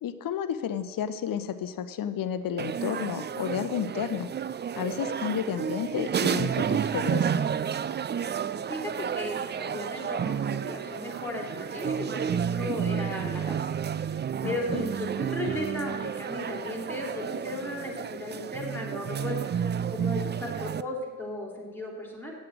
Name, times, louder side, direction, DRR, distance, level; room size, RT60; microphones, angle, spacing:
voice 1, 0.0-4.3 4.8-7.4 14.4-14.8, left 9 dB, 55° left, 12 dB, 0.9 m, -32 dB
sound 1, 2.6-20.8, right 8 dB, 30° right, 0.4 m, -31 dB
voice 2, 8.7-13.6 14.4-19.5 19.9-22.3, left 2 dB, 5° left, -2 dB, 3.6 m, -36 dB
8.5 x 7.6 x 7.9 m, 1.5 s
supercardioid pair, 55°, 39 cm